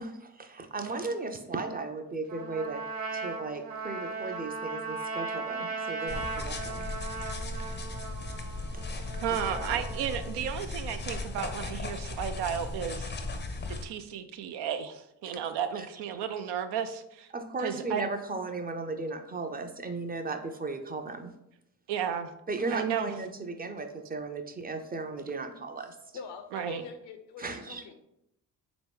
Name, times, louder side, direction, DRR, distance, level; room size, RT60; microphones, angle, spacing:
voice 1, 0.0-2.9 3.1-6.9 8.7-8.8 9.3-9.8 15.3-15.4 15.7-15.9 17.3-21.3 22.5-26.0 27.4-27.8, right 3 dB, 20° right, 6 dB, 0.5 m, -36 dB
Trumpet, 2.3-10.3, right 3 dB, 55° right, 1.2 m, -37 dB
sound 1, 6.1-13.9, left 2 dB, 25° left, 0.5 m, -37 dB
voice 2, 9.2-13.1 13.7-17.3 17.6-18.1 21.9-22.3 22.7-23.1 26.5-26.8, right 8 dB, 75° right, 9 dB, 0.5 m, -33 dB
voice 3, 26.1-27.9, left 5 dB, 70° left, 7 dB, 0.7 m, -44 dB
3.5 x 3.0 x 3.4 m, 0.81 s
supercardioid pair, 50°, 42 cm